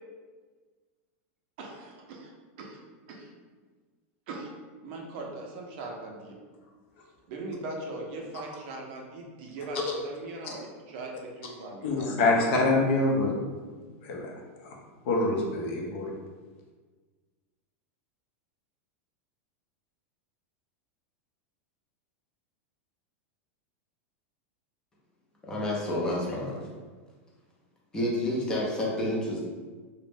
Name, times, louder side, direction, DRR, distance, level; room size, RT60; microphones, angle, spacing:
voice 1, 1.6-2.3 2.6-2.8 3.1-3.3 4.3-4.5 4.8-6.4 7.3-12.3, right 2 dB, 45° right, 0 dB, 0.5 m, -40 dB
voice 2, 11.8-13.3 13.7-13.8 14.0-14.3 14.6-14.7 15.0-16.1, left 2 dB, 55° left, -1 dB, 0.6 m, -25 dB
voice 3, 25.4-26.7 27.9-29.4, left 1 dB, 10° left, -4 dB, 0.4 m, -29 dB
2.5 x 2.0 x 3.3 m, 1.4 s
supercardioid pair, 170°, 8 cm